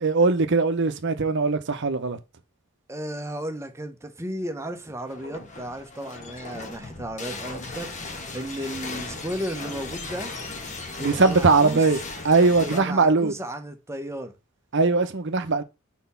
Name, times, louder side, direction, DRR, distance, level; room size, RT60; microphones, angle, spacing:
voice 1, 0.0-2.2 11.0-12.0 12.2-13.3 14.7-15.6, right 3 dB, 55° right, 0.7 m, -20 dB
voice 2, 2.9-10.3 11.0-11.8 12.6-14.3, right 1 dB, 15° right, 0.8 m, -34 dB
sound 1, 5.0-12.8, left 3 dB, 35° left, 1.1 m, -37 dB
4.2 x 4.1 x 5.5 m
head